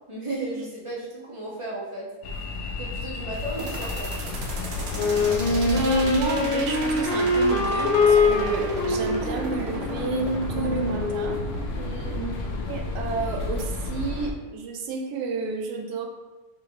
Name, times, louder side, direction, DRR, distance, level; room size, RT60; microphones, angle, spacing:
voice 1, 0.1-2.1 2.8-4.1 11.7-12.2, right 2 dB, 20° right, -8 dB, 0.9 m, -34 dB
sound 1, 2.2-14.3, left 3 dB, 85° left, 1.2 m, -33 dB
sound 2, 3.6-13.6, right 3 dB, 60° right, 0.7 m, -35 dB
Wind instrument woodwind instrument, 5.0-11.5, left 3 dB, 65° left, 0.5 m, -24 dB
voice 2, 5.6-11.4 12.1-12.3 12.7-16.1, right 4 dB, 75° right, 3 dB, 1.1 m, -31 dB
5.0 x 2.8 x 2.8 m, 1.1 s
omnidirectional pair, 1.7 m